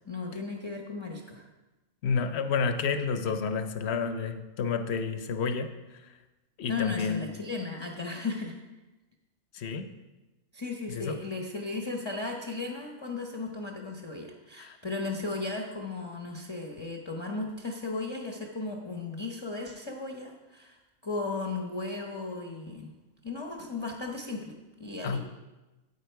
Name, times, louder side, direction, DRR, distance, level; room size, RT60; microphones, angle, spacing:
voice 1, 0.0-1.5 6.7-8.6 10.5-20.8 21.0-22.9 23.2-24.5 24.8-25.2, left 3 dB, 25° left, 1 dB, 0.7 m, -35 dB
voice 2, 2.0-6.1 6.6-7.2 9.5-9.8 10.9-11.2 14.6-14.8 25.0-25.2, left 5 dB, 60° left, 9 dB, 0.9 m, -30 dB
8.7 x 8.1 x 4.6 m, 1.1 s
omnidirectional pair, 1.4 m